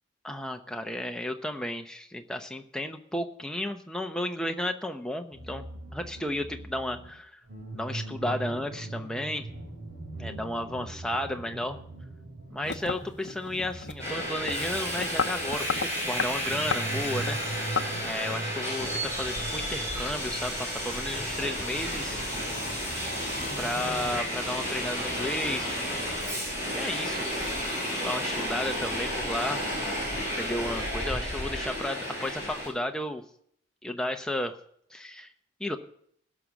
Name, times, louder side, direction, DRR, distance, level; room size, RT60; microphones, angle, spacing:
voice 1, 0.2-5.6 5.9-7.4 7.7-9.4 10.2-11.8 12.5-15.6 15.9-17.7 18.0-22.3 23.6-25.8 26.7-27.3 27.9-30.1 30.3-33.2 33.8-34.6 34.9-35.3 35.6-35.8, left 1 dB, 5° left, 4 dB, 0.8 m, -33 dB
sound 1, 5.3-24.2, right 2 dB, 50° right, 4.1 m, -42 dB
sound 2, 12.6-18.3, left 5 dB, 75° left, 0.7 m, -34 dB
Subway metro underground, 14.0-32.7, equal, 15° right, 5.8 m, -32 dB
17.0 x 6.3 x 7.2 m, 0.67 s
head